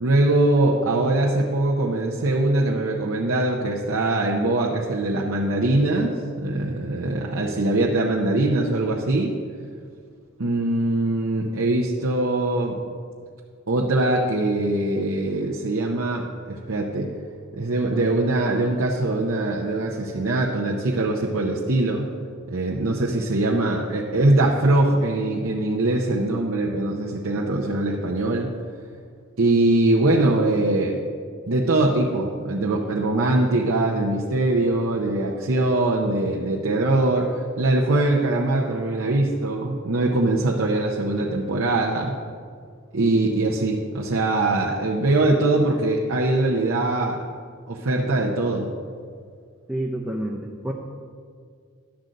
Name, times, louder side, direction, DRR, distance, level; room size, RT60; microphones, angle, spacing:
voice 1, 0.0-9.3 10.4-12.8 13.7-17.1 17.5-22.1 22.5-28.5 29.4-31.0 31.5-42.2 42.9-47.2 47.7-48.7, right 2 dB, 75° right, -3 dB, 0.8 m, -22 dB
voice 2, 49.7-50.7, right 1 dB, 5° right, -2 dB, 0.5 m, -28 dB
11.5 x 3.9 x 7.5 m, 2.1 s
head